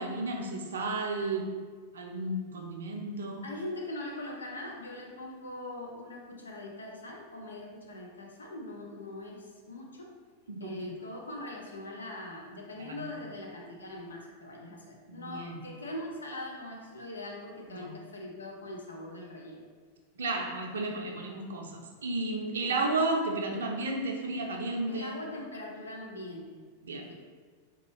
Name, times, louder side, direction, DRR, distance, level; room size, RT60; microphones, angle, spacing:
voice 1, 0.0-1.5 1.9-3.4 10.5-10.9 12.9-13.0 15.1-15.5 17.8-17.9 20.2-25.2 26.8-27.1, right 2 dB, 65° right, 2 dB, 0.4 m, -33 dB
voice 2, 3.4-10.1 10.6-19.6 22.6-22.9 24.9-26.6 26.9-27.1, left 1 dB, 75° left, 0 dB, 0.4 m, -42 dB
3.8 x 2.3 x 3.0 m, 1.5 s
figure-of-eight pair, 90°, 0 cm